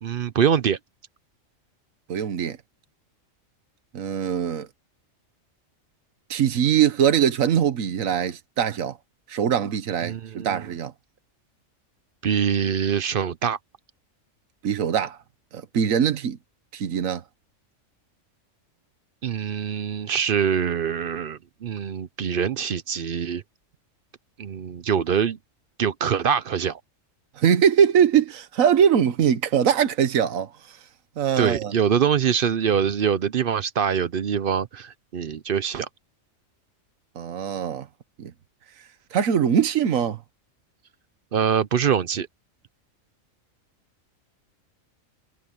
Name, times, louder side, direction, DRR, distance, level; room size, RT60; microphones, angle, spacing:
voice 1, 0.0-0.8 10.0-10.7 12.2-13.6 19.2-23.4 24.4-25.4 25.8-26.8 31.4-35.9 41.3-42.3, right 7 dB, 50° right, 0.7 m, -24 dB
voice 2, 2.1-2.6 3.9-4.7 6.3-9.0 9.3-10.9 14.6-15.2 15.5-16.4 16.7-17.2 27.4-30.8 31.2-31.7 37.1-37.9 38.2-38.3 39.1-40.2, right 8 dB, 80° right, 1.5 m, -22 dB
omnidirectional pair, 1.4 m